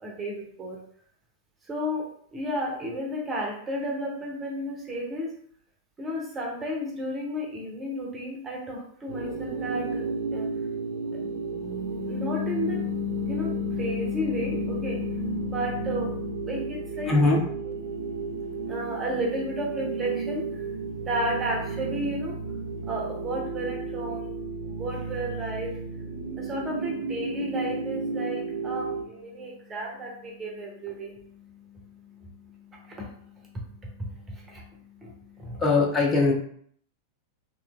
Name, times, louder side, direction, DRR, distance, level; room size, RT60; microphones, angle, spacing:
voice 1, 0.0-0.8 1.6-5.3 6.0-10.5 11.1-17.1 17.9-35.6, left 1 dB, 20° right, -1 dB, 0.6 m, -33 dB
sound 1, 9.1-29.0, right 4 dB, 60° right, 0.4 m, -33 dB
voice 2, 17.1-17.4 35.6-36.3, left 3 dB, 20° left, -3 dB, 0.7 m, -20 dB
2.9 x 2.5 x 2.3 m, 0.62 s
figure-of-eight pair, 90°, 0 cm